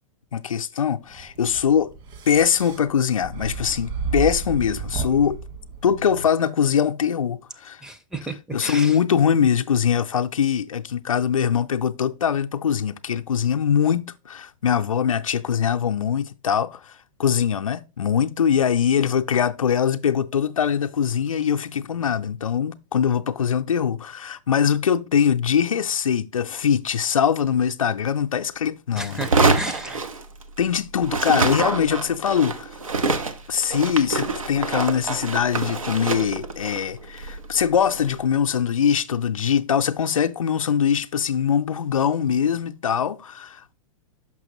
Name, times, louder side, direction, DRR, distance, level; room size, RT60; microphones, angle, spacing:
voice 1, 0.3-1.9 2.3-5.4 5.8-7.8 8.5-29.2 30.6-32.8 33.5-43.7, left 8 dB, 80° left, 0.5 m, -22 dB
sound 1, 1.1-6.3, right 5 dB, 45° right, 1.9 m, -32 dB
voice 2, 7.8-9.0 28.9-30.0, right 2 dB, 5° right, 0.5 m, -33 dB
sound 2, 29.1-30.7 31.0-38.2, right 3 dB, 85° right, 0.7 m, -26 dB
6.0 x 5.9 x 2.9 m
figure-of-eight pair, 105°, 17 cm